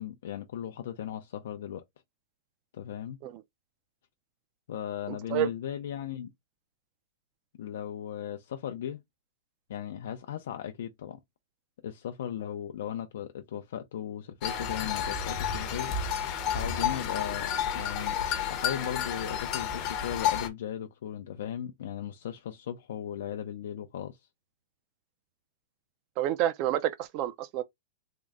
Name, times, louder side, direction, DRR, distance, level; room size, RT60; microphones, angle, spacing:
voice 1, 0.0-1.8 2.7-3.2 4.7-6.3 7.6-9.0 9.7-11.2 11.8-16.0 16.3-18.2 18.5-24.2, left 10 dB, 70° left, 0.5 m, -37 dB
voice 2, 5.1-5.5 26.2-27.6, right 12 dB, 35° right, 0.4 m, -29 dB
sound 1, 14.4-20.5, left 8 dB, 30° left, 0.7 m, -31 dB
3.7 x 2.1 x 3.5 m
supercardioid pair, 165°, 0 cm